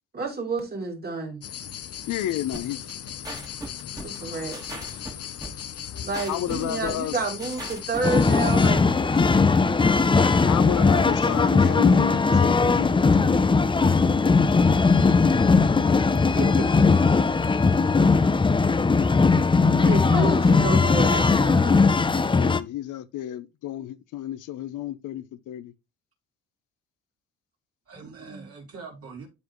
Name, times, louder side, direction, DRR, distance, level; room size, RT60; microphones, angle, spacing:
voice 1, 0.1-1.4 4.0-4.6 6.0-10.0 16.3-17.1 19.8-22.1 27.9-28.5, right 3 dB, 30° right, 3.1 m, -31 dB
sound 1, 1.4-8.7, left 9 dB, 55° left, 0.8 m, -37 dB
voice 2, 2.1-3.1 6.3-7.2 10.4-13.6 22.3-25.7, left 13 dB, 80° left, 0.8 m, -31 dB
sound 2, 2.5-8.1, right 1 dB, 10° right, 2.5 m, -38 dB
sound 3, 8.0-22.6, left 4 dB, 15° left, 0.6 m, -19 dB
voice 3, 10.8-11.4 27.9-29.3, right 5 dB, 50° right, 4.3 m, -42 dB
12.5 x 4.2 x 3.1 m
cardioid pair, 90°, 30 cm